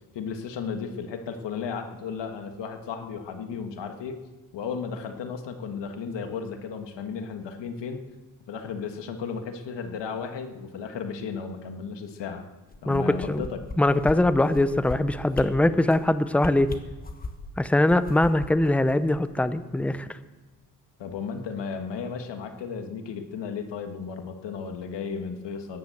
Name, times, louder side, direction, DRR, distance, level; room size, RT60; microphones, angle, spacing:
voice 1, 0.1-4.2 4.5-8.0 8.5-12.5 12.8-13.6 21.0-25.8, left 6 dB, 85° left, 6 dB, 1.6 m, -34 dB
sound 1, 12.7-13.7 14.0-14.2 14.5-15.0 15.3-15.5 15.9-16.0 16.4-17.5 17.9-19.5 19.8-19.9, left 3 dB, 20° left, 1.2 m, -36 dB
voice 2, 12.9-13.4 13.8-16.7 17.6-20.1, left 1 dB, 5° left, 12 dB, 0.5 m, -22 dB
15.0 x 10.5 x 7.8 m, 1.2 s
wide cardioid pair, 155°, 41 cm